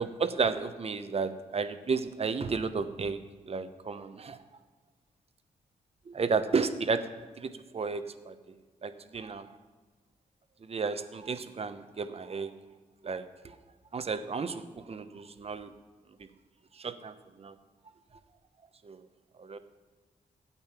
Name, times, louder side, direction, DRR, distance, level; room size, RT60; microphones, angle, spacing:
voice 1, 0.0-3.2 3.5-4.4 6.1-7.0 7.4-8.3 8.8-9.5 10.6-12.5 13.0-13.6 13.9-15.7 16.8-17.5 18.8-19.0 19.4-19.6, right 5 dB, 45° right, 10 dB, 0.9 m, -32 dB
12.5 x 8.7 x 5.8 m, 1.4 s
cardioid pair, 80°, 15 cm